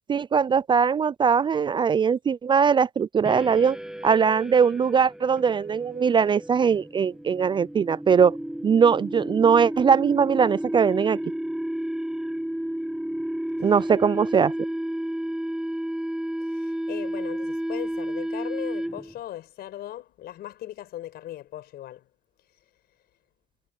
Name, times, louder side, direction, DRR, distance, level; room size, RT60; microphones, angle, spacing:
voice 1, 0.1-3.8 4.0-8.4 8.6-11.2 13.6-14.5, right 6 dB, 30° right, 0.4 m, -21 dB
sound 1, 3.2-19.2, right 1 dB, 5° right, 1.8 m, -32 dB
voice 2, 16.5-22.1, left 13 dB, 70° left, 5.2 m, -38 dB
cardioid pair, 110°, 17 cm